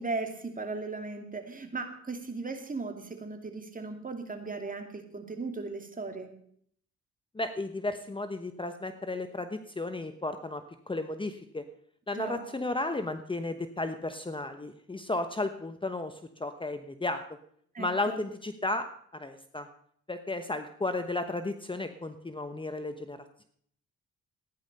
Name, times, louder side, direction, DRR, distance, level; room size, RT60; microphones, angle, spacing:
voice 1, 0.0-6.3 12.2-12.4 17.7-18.2, right 3 dB, 25° right, 5 dB, 2.7 m, -37 dB
voice 2, 7.3-11.6 12.1-17.2 17.8-18.9 19.1-19.7 20.1-23.2, left 2 dB, 15° left, 9 dB, 1.0 m, -34 dB
14.5 x 10.5 x 5.5 m, 0.64 s
cardioid pair, 80°, 30 cm